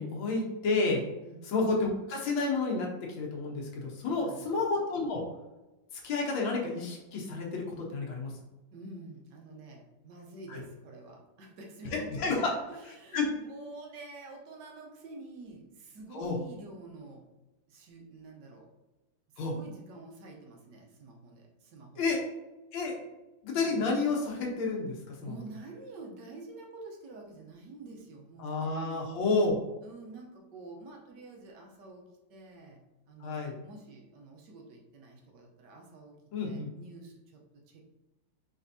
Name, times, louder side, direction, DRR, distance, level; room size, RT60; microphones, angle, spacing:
voice 1, 0.0-1.0 1.4-2.9 3.2-5.2 6.0-8.3 10.5-10.6 11.9-12.5 12.9-13.3 16.1-16.4 19.4-19.5 22.0-22.2 22.7-22.9 23.4-25.3 28.4-29.6 33.2-33.5 36.3-36.7, left 3 dB, 85° left, -1 dB, 1.7 m, -30 dB
voice 2, 4.2-4.6 8.7-17.3 17.7-18.7 19.3-22.0 23.7-23.8 25.2-29.0 29.8-32.0 32.3-32.8 33.1-36.1 36.4-37.9, right 2 dB, 70° right, 0 dB, 1.4 m, -48 dB
5.1 x 3.3 x 2.7 m, 1.0 s
omnidirectional pair, 2.1 m